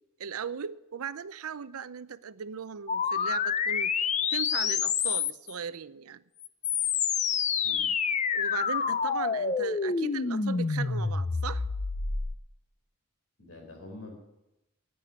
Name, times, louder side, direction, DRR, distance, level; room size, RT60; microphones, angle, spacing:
voice 1, 0.2-6.2 8.3-11.6, right 6 dB, 80° right, 0.6 m, -38 dB
sound 1, 2.9-5.5 6.4-12.4, left 6 dB, 30° left, 0.5 m, -28 dB
voice 2, 7.6-8.0 13.4-14.2, left 2 dB, 70° left, 4.2 m, -46 dB
11.0 x 9.1 x 9.7 m
head